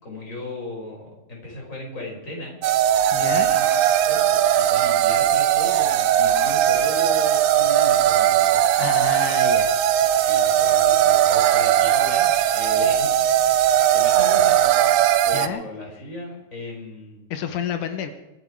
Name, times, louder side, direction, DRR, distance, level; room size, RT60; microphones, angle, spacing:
voice 1, 0.0-2.6 3.2-8.7 10.2-12.3 12.5-13.2 13.9-17.2, left 1 dB, 25° left, -1 dB, 5.7 m, -36 dB
sound 1, 2.6-15.5, right 11 dB, 90° right, 2.3 m, -19 dB
voice 2, 3.1-3.5 8.8-9.8 10.2-10.5 15.3-15.6 17.3-18.1, left 8 dB, 90° left, 7 dB, 2.8 m, -30 dB
25.5 x 11.0 x 4.9 m, 1.0 s
omnidirectional pair, 3.5 m